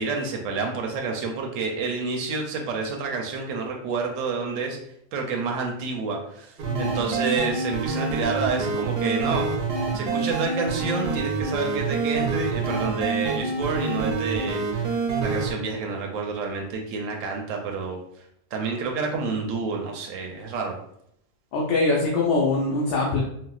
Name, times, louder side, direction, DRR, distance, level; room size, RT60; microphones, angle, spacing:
voice 1, 0.0-4.8 5.1-9.5 9.9-18.0 18.5-20.8, right 4 dB, 85° right, 1 dB, 1.0 m, -29 dB
sound 1, 6.6-15.5, right 4 dB, 60° right, 0.7 m, -27 dB
voice 2, 21.5-23.2, left 3 dB, 70° left, -2 dB, 0.9 m, -23 dB
4.1 x 2.1 x 2.3 m, 0.72 s
omnidirectional pair, 1.3 m